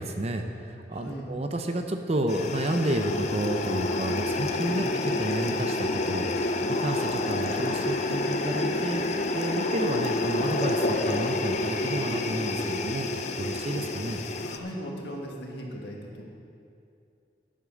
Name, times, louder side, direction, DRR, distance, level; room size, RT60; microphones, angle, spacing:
voice 1, 0.0-14.2, right 1 dB, 35° right, 5 dB, 0.6 m, -31 dB
voice 2, 0.9-1.3 4.6-4.9 14.4-16.2, equal, 60° left, -1 dB, 1.9 m, -38 dB
sound 1, 2.3-14.6, left 2 dB, 35° left, 0.6 m, -28 dB
10.0 x 8.6 x 6.4 m, 2.6 s
head